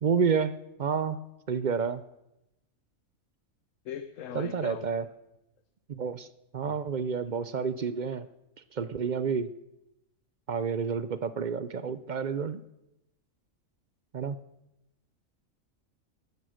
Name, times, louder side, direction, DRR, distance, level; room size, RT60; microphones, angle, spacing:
voice 1, 0.0-0.5 0.8-1.2 1.5-2.0 4.3-5.1 5.9-6.3 6.5-8.3 8.7-9.5 10.5-12.6 14.1-14.4, right 6 dB, 50° right, 13 dB, 0.5 m, -29 dB
voice 2, 3.8-4.9 6.6-6.8, left 9 dB, 70° left, 10 dB, 1.1 m, -39 dB
15.0 x 11.5 x 6.4 m, 0.90 s
omnidirectional pair, 1.4 m